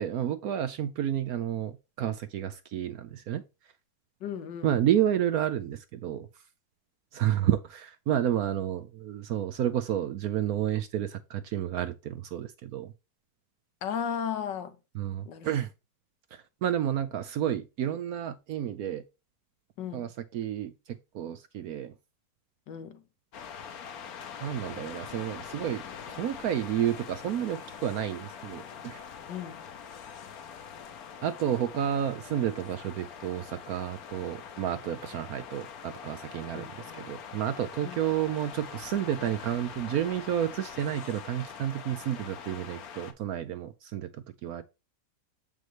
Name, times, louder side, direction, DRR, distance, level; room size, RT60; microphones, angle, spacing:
voice 1, 0.0-3.4 4.6-6.3 7.1-12.9 14.9-15.7 16.3-19.0 19.9-21.9 24.4-29.0 31.2-36.7 36.9-44.1 44.4-44.6, right 10 dB, 65° right, 1.0 m, -30 dB
voice 2, 4.2-4.8 13.8-14.8 15.2-15.5 19.8-20.1 22.7-23.0 29.3-29.6 36.5-37.1 37.8-38.0, left 8 dB, 75° left, 1.6 m, -35 dB
sound 1, 23.3-43.1, left 7 dB, 60° left, 1.3 m, -44 dB
7.7 x 5.3 x 3.1 m
omnidirectional pair, 1.9 m